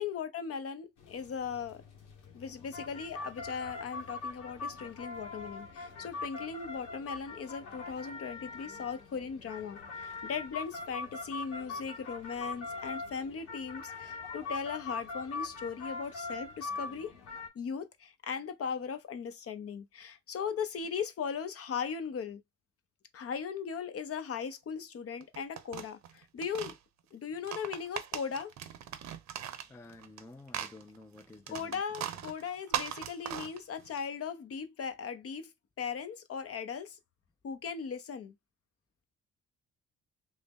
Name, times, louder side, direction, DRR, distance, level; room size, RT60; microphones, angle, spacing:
voice 1, 0.0-1.8 2.3-17.1 17.5-22.4 23.1-26.8 27.1-28.5 31.5-35.5 35.8-37.0 37.4-38.3, left 6 dB, 50° left, 0.7 m, -38 dB
sound 1, 1.0-17.5, left 3 dB, 85° left, 1.4 m, -42 dB
sound 2, 25.2-26.8 27.3-30.2 30.5-34.0, right 10 dB, 65° right, 0.7 m, -39 dB
voice 2, 29.5-31.8, left 2 dB, 10° left, 0.3 m, -52 dB
3.1 x 2.7 x 3.5 m
cardioid pair, 90°, 30 cm